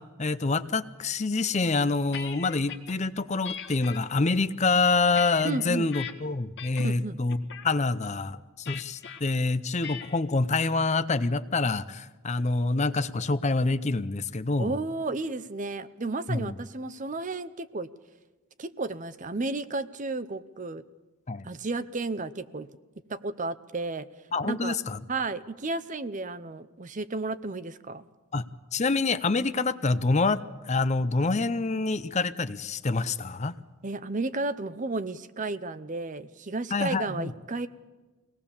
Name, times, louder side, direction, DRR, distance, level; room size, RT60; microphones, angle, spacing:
voice 1, 0.0-7.4 7.6-14.7 16.3-16.6 21.3-21.4 24.3-25.0 28.3-28.4 28.7-33.5 36.7-37.3, left 3 dB, 30° left, 13 dB, 0.6 m, -26 dB
sound 1, 1.7-2.9 3.4-4.0 4.6-6.1 6.6-7.0 7.3-7.7 8.7-9.2 9.8-10.2, left 8 dB, 50° left, 1.6 m, -40 dB
voice 2, 5.4-5.9 6.8-7.2 14.6-17.9 18.6-20.8 21.4-22.7 23.1-24.1 24.4-24.8 25.1-28.0 33.8-37.7, right 3 dB, 35° right, 13 dB, 0.7 m, -33 dB
23.5 x 18.5 x 7.1 m, 1.2 s
head